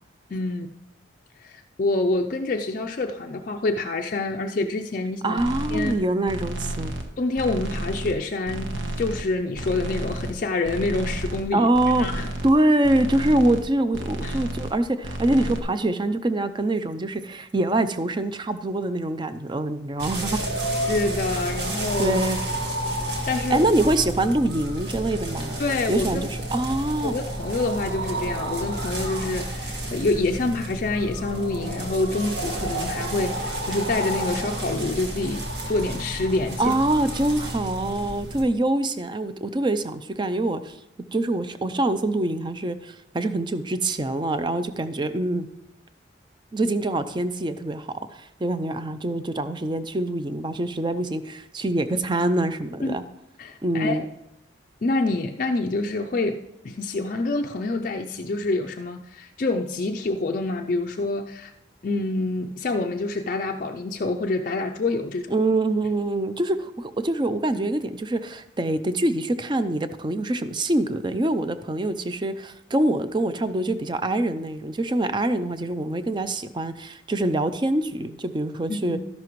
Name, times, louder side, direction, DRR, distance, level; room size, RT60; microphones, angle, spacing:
voice 1, 0.3-0.7 1.4-5.4 5.7-6.0 7.2-8.7 9.0-12.3 14.2-14.4 20.9-22.2 23.3-23.7 25.6-26.3 27.0-36.8 52.8-53.0 53.4-54.0 54.8-61.5 61.8-65.3 78.7-79.0, left 2 dB, 45° left, 3 dB, 0.4 m, -27 dB
voice 2, 5.2-6.9 11.5-20.4 22.0-22.4 23.5-25.6 25.9-27.1 36.6-40.8 41.1-45.5 46.5-53.0 53.6-54.1 65.3-79.0, right 1 dB, 25° right, 11 dB, 0.5 m, -25 dB
sound 1, 5.4-5.9 6.2-7.1 7.3-8.2 8.4-9.3 9.5-10.3 10.6-11.5 11.7-12.5 12.8-13.7 13.9-14.8 15.0-15.6, right 1 dB, 80° right, 1.2 m, -32 dB
sound 2, 20.0-38.5, right 1 dB, 60° right, 1.9 m, -30 dB
12.5 x 11.0 x 3.1 m, 0.86 s
head